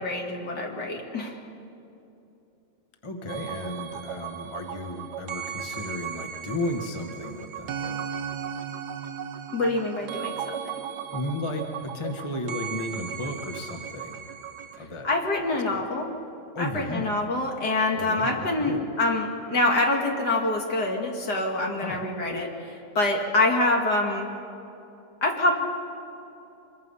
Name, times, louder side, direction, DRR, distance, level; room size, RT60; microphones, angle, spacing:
voice 1, 0.0-1.4 9.5-10.5 15.0-16.1 16.6-24.3 25.2-25.6, left 2 dB, 65° left, 1 dB, 2.8 m, -26 dB
voice 2, 3.0-8.1 11.1-14.3 14.8-15.1 15.7-15.8 16.5-17.2 17.9-18.9 21.8-22.1, left 1 dB, 20° left, 4 dB, 1.3 m, -34 dB
sound 1, 3.3-14.8, right 8 dB, 70° right, 1.4 m, -36 dB
25.5 x 22.0 x 5.6 m, 2.8 s
omnidirectional pair, 1.9 m